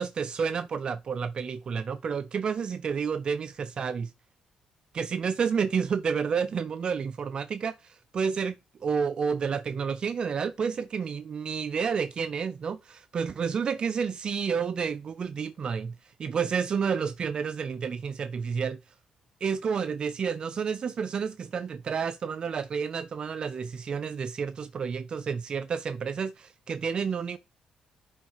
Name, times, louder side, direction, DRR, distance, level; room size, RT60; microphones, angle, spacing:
voice 1, 0.0-4.1 4.9-8.6 8.8-18.8 19.4-27.4, right 6 dB, 45° right, 0.5 m, -30 dB
11.0 x 3.8 x 4.8 m
cardioid pair, 135°, 2 cm